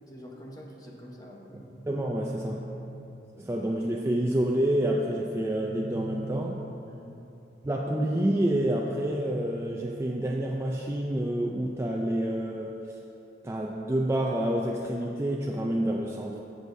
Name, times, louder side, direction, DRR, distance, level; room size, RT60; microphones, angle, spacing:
voice 1, 0.1-1.7 6.9-7.3, equal, 20° left, -1 dB, 0.9 m, -46 dB
sound 1, 1.5-3.5 5.2-7.3 8.9-10.9, right 2 dB, 35° right, 0.8 m, -43 dB
voice 2, 1.9-2.7 3.4-6.6 7.6-13.0 13.4-16.4, right 1 dB, 15° right, -1 dB, 0.4 m, -28 dB
15.5 x 6.3 x 2.7 m, 2.9 s
head